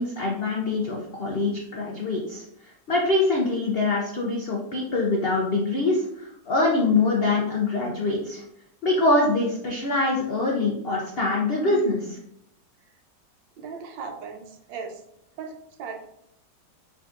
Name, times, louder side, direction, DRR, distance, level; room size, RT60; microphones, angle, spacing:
voice 1, 0.0-2.4 2.9-8.4 8.8-12.2, left 2 dB, 80° left, -2 dB, 0.5 m, -24 dB
voice 2, 13.6-15.0 15.4-16.0, right 5 dB, 90° right, 3 dB, 1.4 m, -37 dB
4.5 x 3.9 x 2.4 m, 0.75 s
omnidirectional pair, 1.9 m